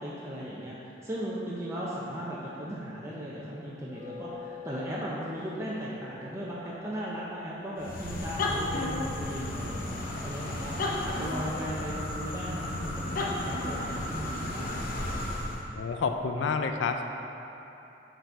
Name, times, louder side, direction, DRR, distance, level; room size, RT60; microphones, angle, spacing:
voice 1, 0.0-14.7, equal, 15° right, -7 dB, 0.6 m, -37 dB
sound 1, 3.9-9.4, left 5 dB, 30° right, 1.0 m, -48 dB
sound 2, 7.8-15.7, left 1 dB, 50° left, 0.6 m, -33 dB
voice 2, 15.7-17.0, left 5 dB, 85° left, 6 dB, 0.4 m, -29 dB
6.6 x 4.1 x 4.5 m, 3.0 s
head